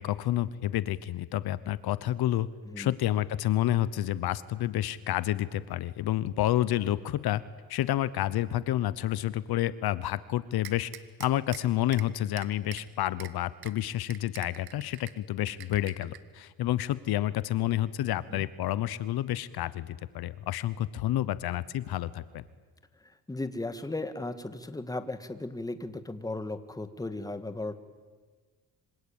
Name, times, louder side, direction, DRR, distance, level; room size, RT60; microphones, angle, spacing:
voice 1, 0.0-2.5 2.8-7.4 7.7-10.9 11.2-22.4, left 13 dB, 70° left, 17 dB, 1.0 m, -29 dB
sound 1, 10.6-11.6 11.9-12.1 12.4-12.8 13.2-13.3 13.6-13.7 14.1-15.1 15.5-16.2, right 12 dB, 65° right, 1.8 m, -43 dB
voice 2, 23.3-27.7, left 2 dB, 10° left, 10 dB, 1.8 m, -36 dB
26.5 x 25.5 x 8.9 m, 1.4 s
cardioid pair, 115°, 39 cm